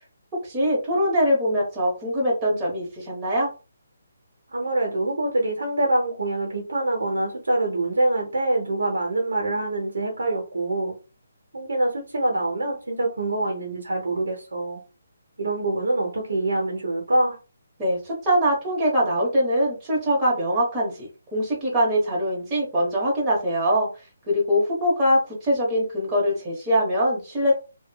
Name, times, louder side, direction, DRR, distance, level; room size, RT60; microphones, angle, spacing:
voice 1, 0.4-3.5 17.8-23.9 24.3-27.5, equal, 15° right, -5 dB, 0.9 m, -23 dB
voice 2, 4.5-10.9 11.5-14.8 15.4-17.4, right 2 dB, 80° right, -1 dB, 0.8 m, -25 dB
3.0 x 2.0 x 2.2 m, 0.32 s
hypercardioid pair, 160°, 0 cm